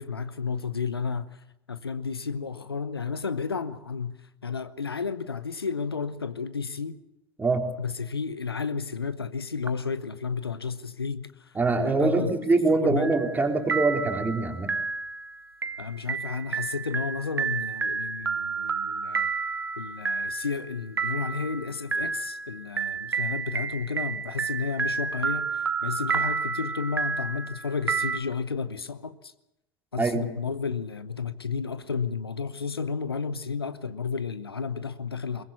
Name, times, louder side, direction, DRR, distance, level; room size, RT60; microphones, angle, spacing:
voice 1, 0.0-7.0 7.8-12.3 12.7-13.1 15.8-19.3 19.8-29.3 29.9-35.4, left 5 dB, 80° left, 1.0 m, -32 dB
voice 2, 11.6-14.7 30.0-30.3, right 3 dB, 15° right, 3.7 m, -24 dB
sound 1, 13.0-13.4 13.7-28.2, right 5 dB, 80° right, 1.1 m, -30 dB
22.5 x 20.5 x 7.2 m
figure-of-eight pair, 80°, 13 cm